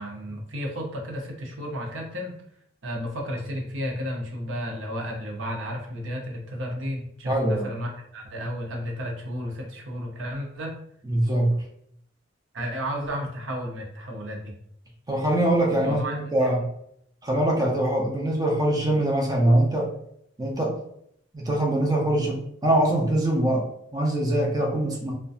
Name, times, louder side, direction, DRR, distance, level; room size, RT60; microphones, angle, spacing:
voice 1, 0.0-2.3 2.8-10.8 12.5-14.5 15.8-16.2, equal, 80° right, 1 dB, 0.6 m, -32 dB
voice 2, 7.3-7.7 11.0-11.6 15.1-16.7 17.2-19.9 20.4-20.8 21.3-25.1, right 1 dB, 20° right, -1 dB, 0.5 m, -23 dB
2.6 x 2.1 x 2.4 m, 0.71 s
head